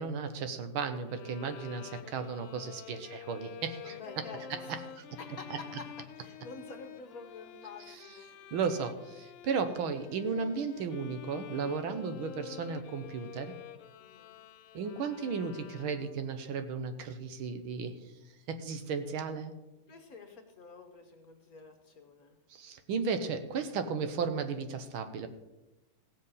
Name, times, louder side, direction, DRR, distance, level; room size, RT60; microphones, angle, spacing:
voice 1, 0.0-4.0 5.0-5.1 7.9-8.1 8.5-13.5 14.7-18.0 18.5-19.5 22.5-25.3, right 5 dB, 75° right, 8 dB, 1.7 m, -35 dB
Bowed string instrument, 1.0-16.3, left 9 dB, 85° left, 1.6 m, -49 dB
voice 2, 3.8-4.7 5.1-5.9 6.2-8.5 14.0-14.4 19.9-22.4, left 4 dB, 50° left, 4 dB, 1.3 m, -48 dB
16.0 x 7.5 x 5.5 m, 1.0 s
omnidirectional pair, 2.4 m